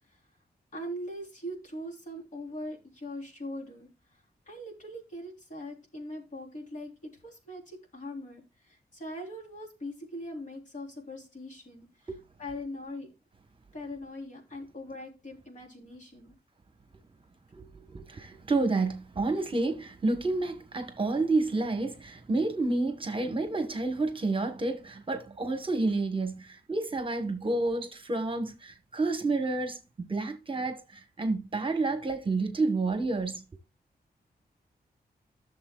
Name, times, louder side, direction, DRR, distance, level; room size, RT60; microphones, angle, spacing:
voice 1, 0.7-3.9 4.5-6.9 7.2-8.4 8.7-11.9 12.4-13.1 13.7-16.3, left 1 dB, 50° left, 3.4 m, -41 dB
voice 2, 17.5-33.4, right 3 dB, 30° right, 1.1 m, -30 dB
15.5 x 6.9 x 2.3 m
wide cardioid pair, 165°, 16 cm